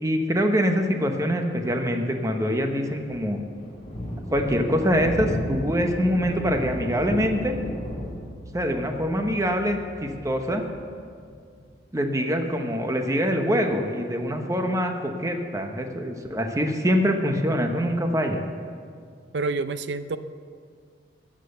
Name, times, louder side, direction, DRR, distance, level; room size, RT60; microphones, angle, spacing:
voice 1, 0.0-3.4 4.3-7.5 8.5-10.6 11.9-18.4, equal, 20° right, 4 dB, 0.9 m, -24 dB
Thunder, 2.7-11.7, equal, 35° left, 3.6 m, -35 dB
Piano, 5.0-10.6, equal, 55° right, 1.3 m, -44 dB
voice 2, 19.3-20.2, right 3 dB, 75° right, 12 dB, 0.5 m, -27 dB
13.0 x 7.6 x 7.9 m, 2.2 s
head